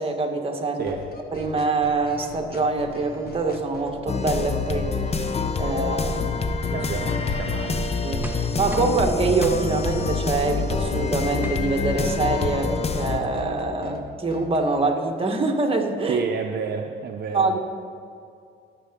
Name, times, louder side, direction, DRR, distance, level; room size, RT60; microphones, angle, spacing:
voice 1, 0.0-1.0 1.3-6.3 8.0-16.2 17.3-17.6, right 3 dB, 30° right, 3 dB, 1.5 m, -25 dB
voice 2, 0.8-1.1 6.7-7.9 16.1-17.6, right 6 dB, 55° right, 3 dB, 0.7 m, -30 dB
sound 1, 0.9-14.6, left 4 dB, 50° left, 1.2 m, -41 dB
sound 2, 4.1-13.2, left 4 dB, 30° left, 0.8 m, -26 dB
sound 3, 8.2-9.0 9.4-9.6 10.7-10.8 11.4-11.6 12.3-12.4 12.6-12.9, right 1 dB, 10° right, 0.9 m, -37 dB
19.0 x 6.9 x 3.7 m, 2.4 s
cardioid pair, 90°, 20 cm